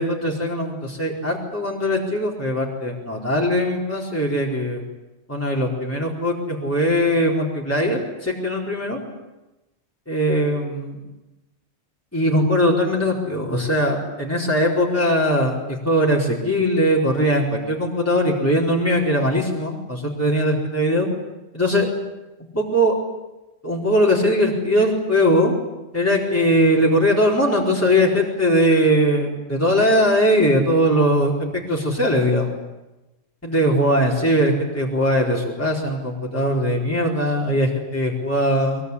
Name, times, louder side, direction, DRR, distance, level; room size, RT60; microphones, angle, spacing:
voice 1, 0.0-4.8 5.3-9.0 10.1-11.0 12.1-21.1 21.5-21.9 22.5-22.9 23.6-25.5 25.9-32.5 33.4-38.8, equal, 15° left, -3 dB, 4.6 m, -20 dB
23.5 x 22.5 x 9.9 m, 1.0 s
omnidirectional pair, 1.1 m